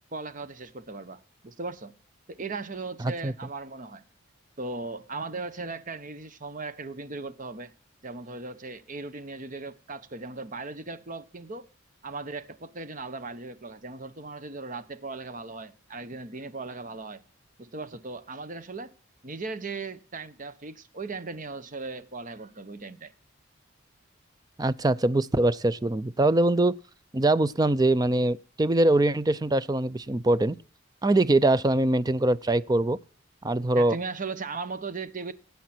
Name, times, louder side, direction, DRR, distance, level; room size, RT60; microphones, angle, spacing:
voice 1, 0.1-1.9 2.3-4.0 4.6-7.7 8.0-11.7 12.0-17.2 17.6-18.9 19.2-23.1 33.7-35.3, right 3 dB, 40° right, 1.0 m, -37 dB
voice 2, 24.6-26.7 27.1-30.6 31.0-33.0 33.4-34.0, right 2 dB, 20° right, 0.5 m, -23 dB
17.5 x 8.3 x 4.4 m
head